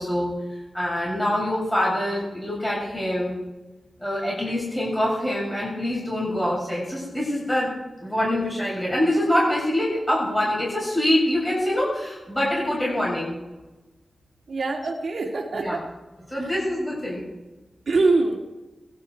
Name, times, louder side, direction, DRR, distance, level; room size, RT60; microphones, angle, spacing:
voice 1, 0.0-3.4 4.0-7.7 8.0-13.4 15.5-15.8 16.3-17.2, left 1 dB, 10° left, -5 dB, 7.3 m, -25 dB
voice 2, 14.5-15.8 17.9-18.4, right 3 dB, 65° right, 1 dB, 3.1 m, -23 dB
22.0 x 12.0 x 4.8 m, 1.1 s
wide cardioid pair, 110°, 0 cm